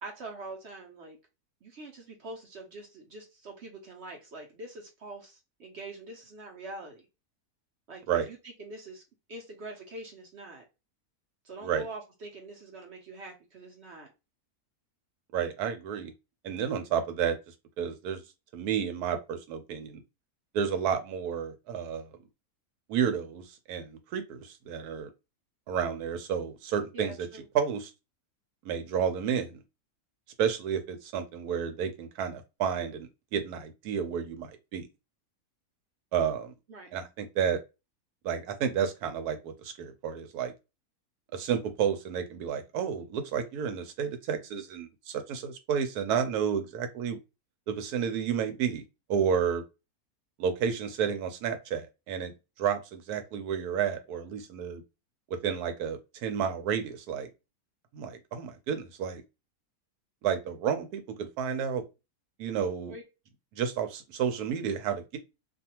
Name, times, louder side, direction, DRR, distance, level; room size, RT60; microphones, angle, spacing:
voice 1, 0.0-1.2 1.6-7.1 7.9-9.0 9.3-10.6 11.4-14.1 20.7-20.8 26.9-27.5 36.7-36.9 62.9-63.0, right 2 dB, 55° right, 0.9 m, -44 dB
voice 2, 15.3-16.1 16.4-17.4 17.8-18.2 18.5-20.0 20.5-22.1 22.9-25.1 25.7-27.3 27.5-27.9 28.6-29.5 30.4-34.9 36.1-36.5 36.9-37.6 38.2-40.5 41.3-47.2 47.7-48.8 49.1-49.6 50.4-54.8 55.4-57.3 57.9-59.2 60.2-61.8 62.4-63.0 63.5-65.2, right 7 dB, 85° right, 1.1 m, -31 dB
2.5 x 2.3 x 2.8 m
omnidirectional pair, 1.6 m